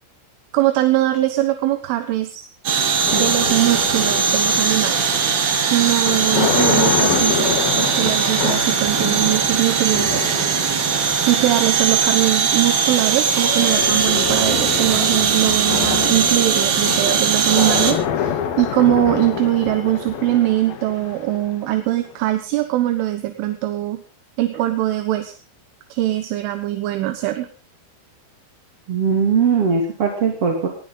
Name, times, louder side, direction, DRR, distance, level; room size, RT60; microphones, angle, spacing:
voice 1, 0.5-2.5 3.1-5.0 5.6-10.3 11.3-24.0 24.4-25.3 25.9-27.5, right 15 dB, 80° right, 8 dB, 3.7 m, -21 dB
sound 1, 2.7-17.9, right 6 dB, 60° right, 4.4 m, -20 dB
sound 2, 3.1-22.1, left 8 dB, 60° left, 3.0 m, -27 dB
voice 2, 28.9-30.7, right 6 dB, 35° right, 2 dB, 2.8 m, -19 dB
19.5 x 16.5 x 4.0 m, 0.36 s
omnidirectional pair, 5.6 m